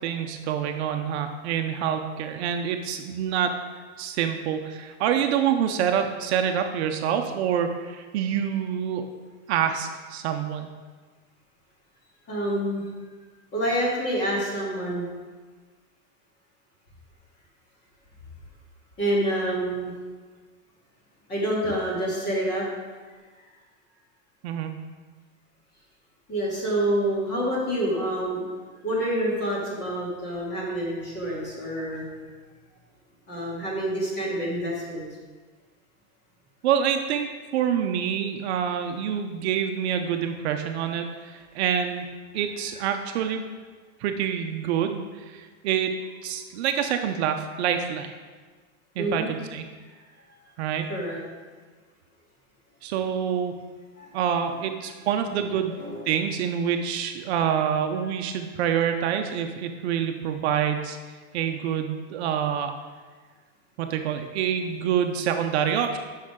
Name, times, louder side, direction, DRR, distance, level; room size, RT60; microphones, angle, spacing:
voice 1, 0.0-3.6 4.0-9.0 9.5-10.7 24.4-24.7 36.6-42.0 42.3-43.4 44.0-46.0 46.2-48.1 49.0-49.6 50.6-50.9 52.8-53.5 54.1-55.7 56.1-61.0 61.3-62.7 63.8-66.0, right 8 dB, 55° right, 5 dB, 0.8 m, -26 dB
voice 2, 12.3-12.9 13.5-15.1 19.0-19.9 21.3-22.6 26.3-28.5 28.8-32.1 33.3-35.0 49.0-49.3 50.9-51.2 54.0-54.1 55.8-56.1, right 1 dB, 25° left, -5 dB, 3.0 m, -27 dB
12.0 x 6.4 x 3.7 m, 1.4 s
supercardioid pair, 160°, 39 cm